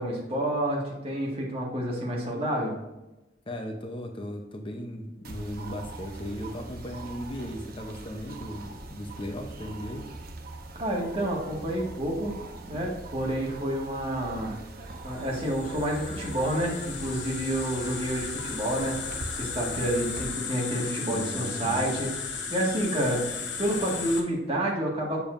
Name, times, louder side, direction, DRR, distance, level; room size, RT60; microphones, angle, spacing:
voice 1, 0.0-2.8 10.8-12.3 12.7-14.6 15.0-22.1 22.5-23.2 23.6-25.2, right 1 dB, 35° right, -2 dB, 1.7 m, -29 dB
voice 2, 3.5-10.1 21.1-21.9, equal, 30° left, 4 dB, 0.7 m, -37 dB
sound 1, 5.2-20.3, right 2 dB, 60° right, 0.8 m, -42 dB
sound 2, 15.1-24.2, left 5 dB, 75° left, 1.0 m, -35 dB
7.0 x 6.9 x 2.5 m, 0.99 s
head